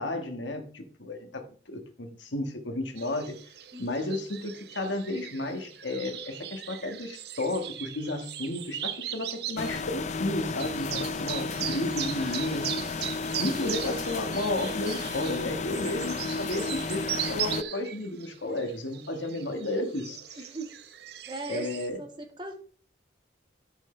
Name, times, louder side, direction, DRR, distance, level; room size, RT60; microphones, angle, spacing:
voice 1, 0.0-1.4 1.7-3.4 3.8-12.7 13.4-20.5 21.5-22.0, left 2 dB, 80° left, 1.7 m, -33 dB
sound 1, 3.0-21.9, right 11 dB, 60° right, 0.7 m, -39 dB
voice 2, 3.7-4.1 20.4-20.8 21.2-21.7 22.0-22.5, right 2 dB, 25° right, 1.8 m, -39 dB
sound 2, 9.6-17.6, left 4 dB, 40° left, 0.4 m, -33 dB
13.5 x 6.4 x 3.3 m
head